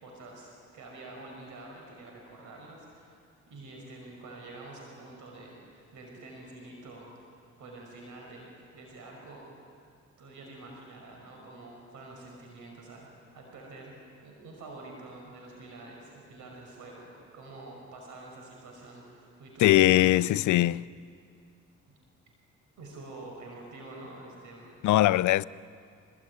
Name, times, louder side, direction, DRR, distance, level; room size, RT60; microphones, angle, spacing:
voice 1, 0.0-3.1 3.5-7.3 7.6-8.5 8.7-9.4 10.2-19.8 22.8-24.8, right 2 dB, 80° right, 5.6 m, -47 dB
voice 2, 19.6-20.9 24.8-25.4, left 15 dB, 75° left, 0.6 m, -21 dB
26.5 x 20.0 x 9.5 m
cardioid pair, 90°, 30 cm